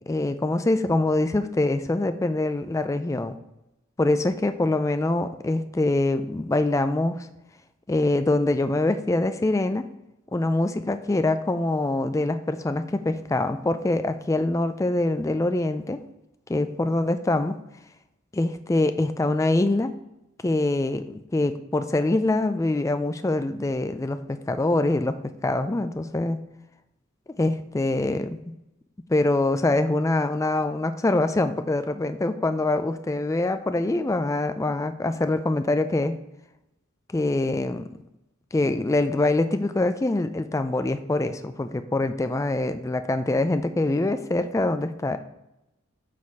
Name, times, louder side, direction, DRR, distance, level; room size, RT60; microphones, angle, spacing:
voice 1, 0.1-3.3 4.0-7.3 7.9-9.8 10.3-16.0 16.5-17.5 18.3-19.9 20.4-25.2 25.4-26.4 27.4-28.4 29.1-36.2 37.1-37.9 38.5-45.2, left 2 dB, 15° left, 10 dB, 0.3 m, -24 dB
7.3 x 4.2 x 4.6 m, 0.90 s
head